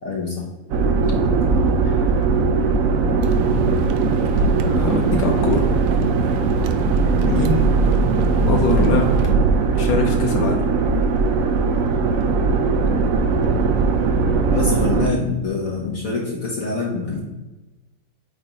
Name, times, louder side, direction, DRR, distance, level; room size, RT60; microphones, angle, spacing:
voice 1, 0.0-0.5 0.7-1.3 14.5-17.2, left 3 dB, 50° left, -2 dB, 1.3 m, -25 dB
sound 1, 0.7-15.1, right 4 dB, 70° right, 0.8 m, -19 dB
sound 2, 3.2-9.3, right 6 dB, 85° right, 1.3 m, -28 dB
voice 2, 4.7-5.7 6.0-6.1 7.3-7.7 8.5-9.1 9.7-10.6, left 4 dB, 85° left, 2 dB, 1.5 m, -22 dB
5.1 x 4.2 x 4.8 m, 1.1 s
omnidirectional pair, 2.0 m